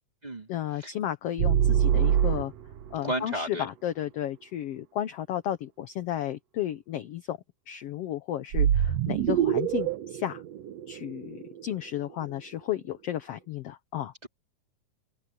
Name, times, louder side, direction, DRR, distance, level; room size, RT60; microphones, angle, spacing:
voice 1, 0.5-2.5 2.9-7.4 7.7-10.4 10.9-14.1, left 11 dB, 70° left, 1.5 m, -33 dB
sound 1, 1.4-2.9 8.5-11.6, right 10 dB, 65° right, 1.8 m, -25 dB
voice 2, 3.0-3.7 14.2-14.3, right 1 dB, 10° right, 3.8 m, -32 dB
open air
omnidirectional pair, 3.7 m